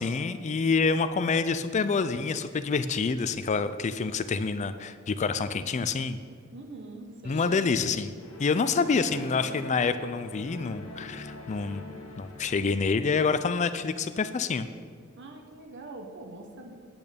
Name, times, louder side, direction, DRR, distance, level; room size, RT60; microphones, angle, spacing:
voice 1, 0.0-6.2 7.3-8.1 8.4-11.8 12.2-14.7, left 4 dB, 35° left, 12 dB, 0.4 m, -27 dB
voice 2, 6.5-7.7 15.2-16.7, right 2 dB, 55° right, 3 dB, 1.0 m, -43 dB
sound 1, 8.2-12.8, left 2 dB, 70° left, 1.2 m, -44 dB
8.7 x 8.6 x 5.1 m, 2.1 s
head